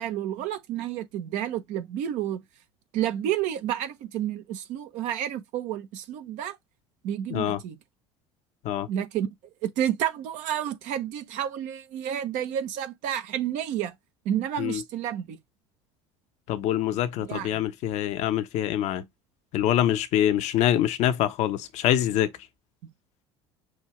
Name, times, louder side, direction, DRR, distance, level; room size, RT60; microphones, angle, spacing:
voice 1, 0.0-2.4 2.9-6.6 7.0-7.8 8.9-9.3 9.6-13.9 14.2-15.4 17.2-17.6, right 10 dB, 55° right, 1.0 m, -30 dB
voice 2, 16.5-19.1 19.5-22.3, left 11 dB, 50° left, 0.9 m, -25 dB
6.3 x 2.7 x 3.1 m
figure-of-eight pair, 65°, 15 cm